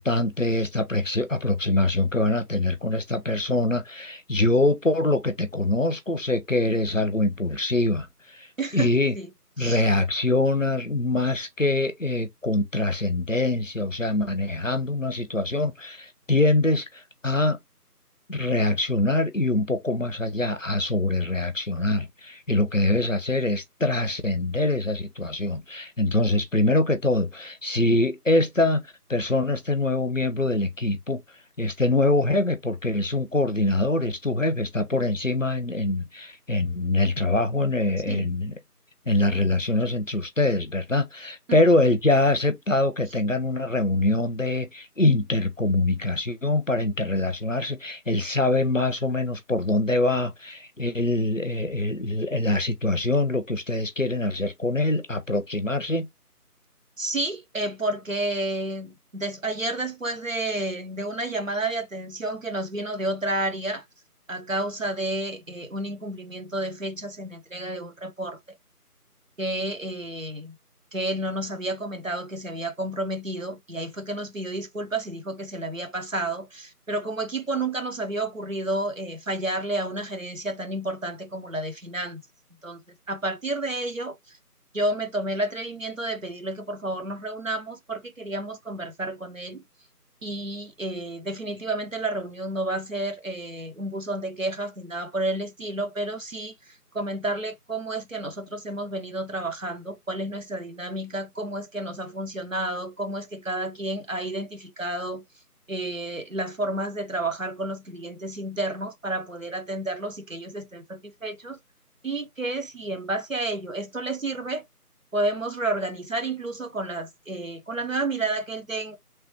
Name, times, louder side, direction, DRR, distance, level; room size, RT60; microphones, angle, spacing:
voice 1, 0.0-8.5 8.7-9.1 9.6-17.6 18.3-31.2 31.6-38.5 39.1-56.1, left 2 dB, 55° left, 0.6 m, -24 dB
voice 2, 8.6-9.3 9.6-9.8 38.1-38.3 41.5-41.6 57.0-63.8 64.3-68.4 69.4-70.5 70.9-82.2 82.6-82.8 83.1-84.2 84.7-89.6 90.2-105.2 105.7-111.6 112.0-114.6 115.1-119.0, right 2 dB, 55° right, 0.7 m, -30 dB
3.2 x 2.3 x 2.8 m
figure-of-eight pair, 175°, 47 cm